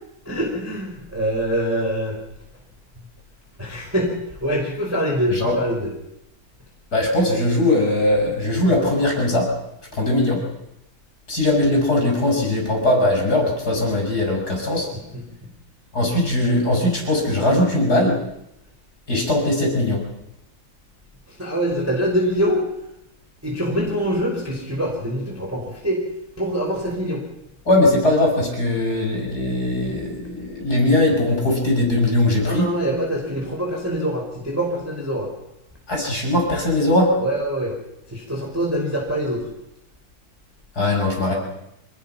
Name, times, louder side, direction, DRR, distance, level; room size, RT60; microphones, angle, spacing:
voice 1, 0.2-2.2 3.6-4.1 4.4-5.9 14.9-15.2 21.3-22.6 23.4-26.0 26.4-27.2 32.4-35.3 37.2-37.7 38.1-39.5, equal, 5° right, -2 dB, 4.8 m, -24 dB
voice 2, 6.9-9.5 9.9-10.4 11.3-14.9 15.9-18.2 19.1-20.0 27.6-32.7 35.9-37.1 40.7-41.3, left 1 dB, 20° left, 0 dB, 6.5 m, -20 dB
26.0 x 20.5 x 5.9 m, 0.84 s
omnidirectional pair, 5.6 m